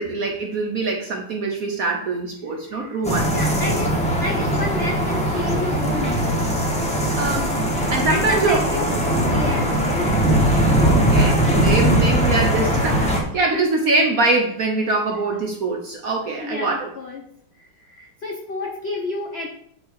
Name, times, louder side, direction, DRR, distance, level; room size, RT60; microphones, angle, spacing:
voice 1, 0.0-3.4 7.2-7.6 7.9-8.6 10.7-16.9, right 3 dB, 60° right, 2 dB, 0.9 m, -23 dB
voice 2, 2.6-3.1 3.3-6.5 8.1-8.8 9.2-10.2 13.5-13.6 16.4-17.3 17.5-19.5, left 3 dB, 75° left, 0 dB, 0.5 m, -30 dB
sound 1, 3.0-13.2, right 1 dB, 5° left, 0.9 m, -20 dB
6.6 x 4.6 x 4.7 m, 0.69 s
omnidirectional pair, 2.3 m